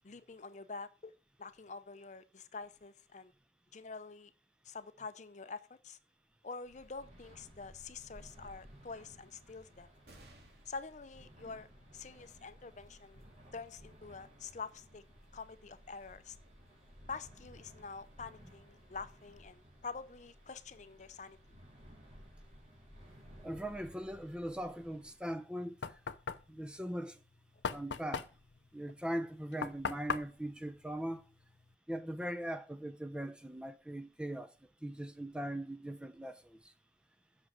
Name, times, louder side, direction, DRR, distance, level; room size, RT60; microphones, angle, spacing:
voice 1, 0.0-1.1 1.4-3.3 3.7-4.3 4.6-6.0 6.4-9.9 10.7-11.7 11.9-13.2 13.5-15.0 15.3-16.4 17.1-21.4, left 4 dB, 40° left, 0.6 m, -46 dB
sound 1, 6.6-25.2, equal, 40° right, 4.6 m, -58 dB
sound 2, 10.0-16.9 17.5-17.6 18.8-19.3, right 1 dB, 65° right, 2.5 m, -66 dB
voice 2, 23.4-26.0 26.5-27.2 27.7-28.3 28.7-31.2 31.9-34.5 34.8-36.7, right 1 dB, 5° right, 0.7 m, -40 dB
Knock, 25.3-31.7, left 5 dB, 85° left, 0.7 m, -41 dB
7.9 x 6.2 x 7.3 m
head